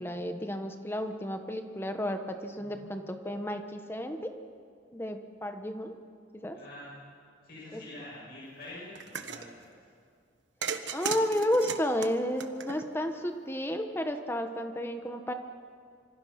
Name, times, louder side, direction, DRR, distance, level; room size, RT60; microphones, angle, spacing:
voice 1, 0.0-4.3 4.9-5.9 6.3-6.6 7.7-7.8 10.9-15.3, equal, 10° left, 6 dB, 1.2 m, -32 dB
voice 2, 6.5-6.9 7.4-9.9, left 1 dB, 55° left, -7 dB, 7.8 m, -46 dB
sound 1, 9.0-9.5 10.6-13.1, right 6 dB, 75° right, 1.3 m, -36 dB
26.5 x 25.5 x 6.0 m, 2.3 s
head